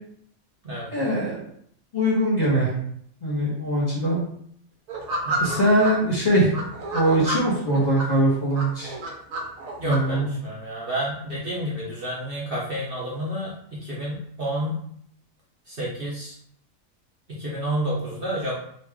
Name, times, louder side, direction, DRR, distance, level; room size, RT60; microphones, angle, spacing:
voice 1, 0.9-1.4 1.9-2.7 3.2-4.2 5.4-6.5 6.9-8.9 9.8-10.3, right 1 dB, 35° left, -6 dB, 1.0 m, -22 dB
sound 1, 4.9-5.9 6.5-8.1 8.5-10.0, right 2 dB, 75° right, 1.1 m, -29 dB
voice 2, 5.2-5.6 9.8-14.8 15.7-16.4 17.3-18.5, equal, 45° right, -5 dB, 0.9 m, -30 dB
3.2 x 2.5 x 3.5 m, 0.66 s
omnidirectional pair, 1.5 m